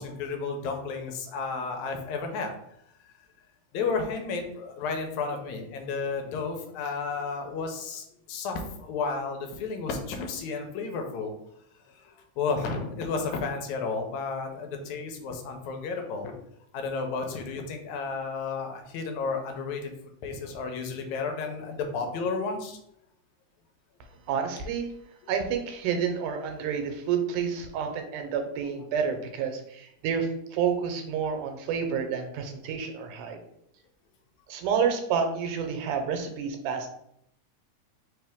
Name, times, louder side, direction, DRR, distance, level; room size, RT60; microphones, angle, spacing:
voice 1, 0.0-2.5 3.7-11.3 12.0-16.3 16.7-19.9 20.2-22.8, left 4 dB, 75° left, 4 dB, 1.9 m, -32 dB
voice 2, 24.3-24.9 25.3-33.4 34.5-36.9, right 7 dB, 85° right, 5 dB, 2.2 m, -29 dB
4.5 x 3.3 x 3.5 m, 0.74 s
omnidirectional pair, 3.5 m